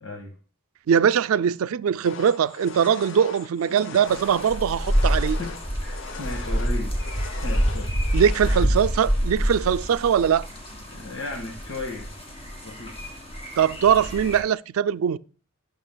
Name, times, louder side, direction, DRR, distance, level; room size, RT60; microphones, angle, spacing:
voice 1, 0.0-0.4 3.9-4.2 5.1-5.5 5.8-7.0 7.4-7.9 8.4-8.6 10.9-12.1 12.6-12.9, left 2 dB, 90° left, 1.6 m, -36 dB
voice 2, 0.9-5.4 8.1-10.5 13.6-15.2, right 8 dB, 85° right, 0.4 m, -21 dB
sound 1, 2.0-8.6, left 4 dB, 60° left, 0.6 m, -40 dB
sound 2, 4.1-14.4, equal, 30° left, 1.6 m, -27 dB
12.0 x 6.0 x 2.2 m
head